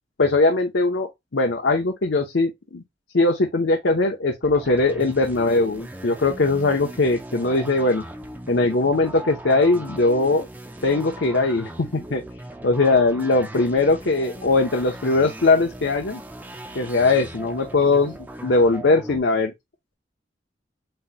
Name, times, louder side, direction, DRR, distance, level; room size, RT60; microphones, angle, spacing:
voice 1, 0.2-2.8 3.1-8.0 8.5-10.5 10.8-12.2 12.6-16.2 16.7-19.5, left 3 dB, 70° left, 0.8 m, -20 dB
sound 1, 4.4-19.2, right 1 dB, 10° right, 0.5 m, -39 dB
7.8 x 3.0 x 2.2 m
head